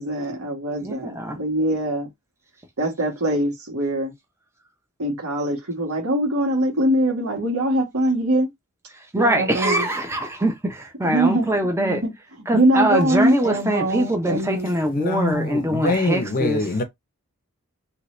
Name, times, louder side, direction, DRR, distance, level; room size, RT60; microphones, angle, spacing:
voice 1, 0.0-2.1 2.8-4.1 5.0-8.5 9.1-9.9 11.0-11.5 11.8-12.1 12.5-14.7, right 1 dB, 85° right, 1.6 m, -22 dB
voice 2, 0.8-1.4 8.9-12.0 12.5-16.7, right 1 dB, 10° right, 0.6 m, -23 dB
voice 3, 14.9-16.8, left 2 dB, 40° left, 0.6 m, -24 dB
2.8 x 2.8 x 3.2 m
head